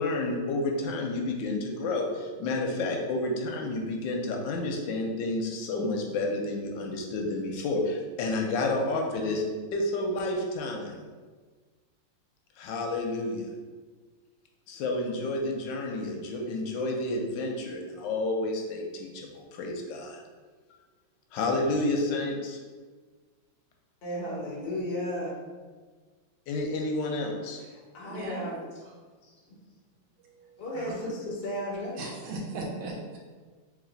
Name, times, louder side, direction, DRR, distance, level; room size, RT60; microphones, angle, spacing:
voice 1, 0.0-9.4 9.7-11.0 12.6-13.5 14.7-20.2 21.3-22.6 26.5-27.6, left 2 dB, 75° left, 1 dB, 1.2 m, -30 dB
voice 2, 24.0-25.3 27.9-28.6 29.2-29.3 30.6-32.0, left 1 dB, 55° left, -3 dB, 0.6 m, -34 dB
voice 3, 28.0-28.4 30.3-31.1 32.0-33.2, right 2 dB, 70° right, -2 dB, 1.4 m, -38 dB
3.2 x 3.1 x 3.8 m, 1.4 s
omnidirectional pair, 2.2 m